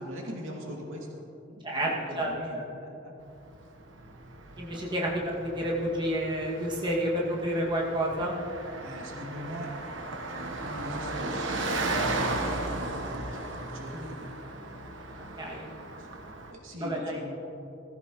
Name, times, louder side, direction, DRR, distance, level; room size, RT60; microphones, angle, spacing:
voice 1, 0.0-3.1 4.7-4.8 8.8-9.7 10.3-14.6 16.0-16.1 16.5-17.3, equal, 90° right, -2 dB, 2.7 m, -42 dB
voice 2, 2.2-2.6 4.6-8.3 15.4-15.6 16.8-17.2, right 1 dB, 25° right, -4 dB, 2.2 m, -30 dB
Car passing by, 3.3-16.5, right 2 dB, 70° right, 1.3 m, -36 dB
18.5 x 15.0 x 3.2 m, 2.9 s
head